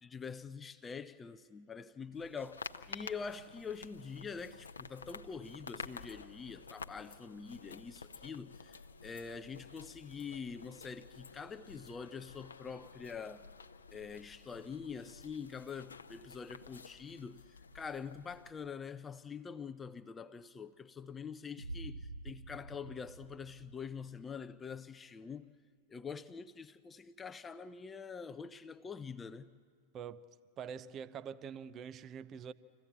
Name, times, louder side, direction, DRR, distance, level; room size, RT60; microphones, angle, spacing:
voice 1, 0.0-13.5 13.9-25.5 25.9-29.5, left 6 dB, 15° left, 0.5 m, -45 dB
sound 1, 2.1-18.5, left 5 dB, 75° left, 0.7 m, -51 dB
Boom, 21.6-24.5, right 2 dB, 80° right, 0.7 m, -48 dB
voice 2, 29.9-30.3 30.6-32.5, right 7 dB, 30° right, 0.6 m, -45 dB
26.0 x 15.5 x 8.0 m
figure-of-eight pair, 90°, 0 cm